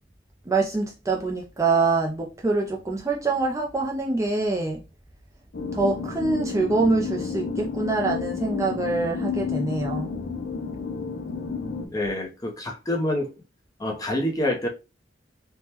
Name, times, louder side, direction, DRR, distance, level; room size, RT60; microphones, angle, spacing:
voice 1, 0.5-4.8 5.7-10.1, right 3 dB, 15° right, 0.3 m, -25 dB
sound 1, 5.5-11.9, left 5 dB, 55° left, 0.5 m, -31 dB
voice 2, 11.9-13.3 13.8-14.7, left 1 dB, 20° left, 0.6 m, -27 dB
3.4 x 2.1 x 2.8 m
head